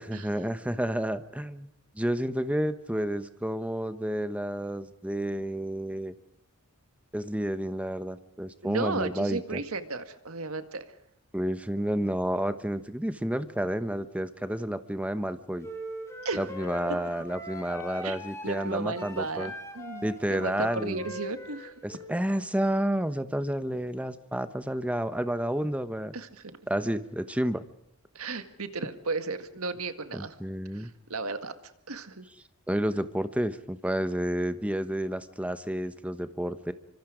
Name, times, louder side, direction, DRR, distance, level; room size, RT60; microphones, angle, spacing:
voice 1, 0.0-1.7 1.9-6.1 7.1-9.6 11.3-15.7 16.3-19.5 20.0-21.0 21.8-26.1 26.7-27.6 30.1-30.9 32.7-36.7, right 1 dB, 5° right, 11 dB, 1.1 m, -30 dB
voice 2, 8.6-10.9 16.2-16.5 18.0-18.2 18.4-21.7 26.1-26.6 28.1-30.4 30.7-32.3, right 3 dB, 70° right, 9 dB, 1.9 m, -34 dB
sound 1, 15.6-22.1, equal, 15° left, 4.9 m, -41 dB
27.5 x 25.0 x 5.0 m, 0.76 s
head